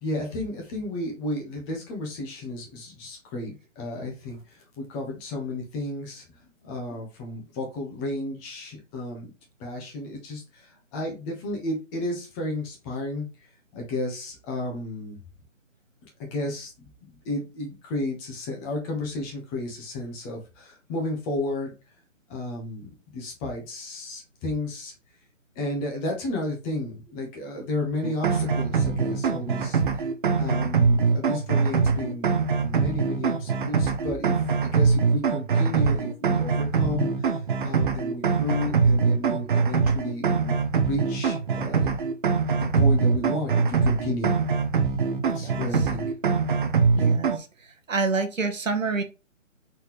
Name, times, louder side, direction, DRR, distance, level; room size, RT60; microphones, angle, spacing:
voice 1, 0.0-9.3 9.6-13.3 13.7-15.2 16.0-16.7 17.0-21.7 22.3-24.9 25.5-30.1 30.4-37.3 37.6-40.6 40.9-42.0 42.5-44.3 45.2-46.1 47.0-47.1, left 2 dB, 20° left, 0 dB, 1.2 m, -33 dB
sound 1, 28.0-47.4, right 5 dB, 40° right, 0.6 m, -23 dB
voice 2, 46.9-47.5 47.9-49.0, right 4 dB, 80° right, 7 dB, 1.1 m, -27 dB
4.1 x 4.0 x 3.1 m, 0.29 s
figure-of-eight pair, 140°, 39 cm